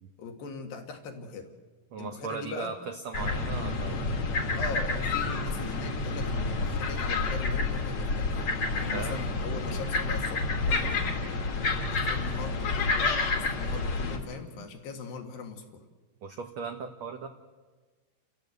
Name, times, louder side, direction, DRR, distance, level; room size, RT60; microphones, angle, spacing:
voice 1, 0.2-1.5 2.0-2.7 4.6-8.4 8.8-11.1 11.9-15.8, left 4 dB, 65° left, 4 dB, 3.4 m, -40 dB
voice 2, 1.9-4.2 8.9-9.2 16.2-17.3, right 5 dB, 85° right, 5 dB, 1.5 m, -38 dB
sound 1, 3.1-14.2, left 3 dB, 45° left, 2.4 m, -29 dB
29.5 x 14.5 x 8.1 m, 1.4 s
omnidirectional pair, 4.7 m